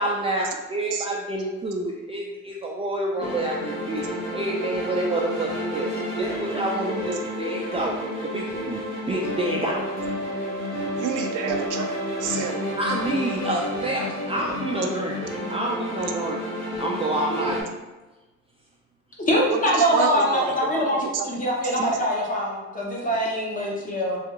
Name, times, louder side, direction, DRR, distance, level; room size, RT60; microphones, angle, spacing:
voice 1, 0.0-4.0 4.3-5.9 6.2-7.9 8.3-9.8 12.8-15.2 15.5-16.4 16.8-17.6 21.8-21.9, right 1 dB, 20° right, -2 dB, 0.4 m, -28 dB
sound 1, 3.2-17.6, left 1 dB, 55° left, 1.4 m, -30 dB
voice 2, 11.0-12.7 19.5-20.7 21.0-21.3, right 6 dB, 90° right, 4 dB, 0.5 m, -28 dB
voice 3, 19.2-21.0 21.3-24.2, equal, 25° left, -3 dB, 0.9 m, -23 dB
3.4 x 2.4 x 2.9 m, 1.1 s
cardioid pair, 90°, 30 cm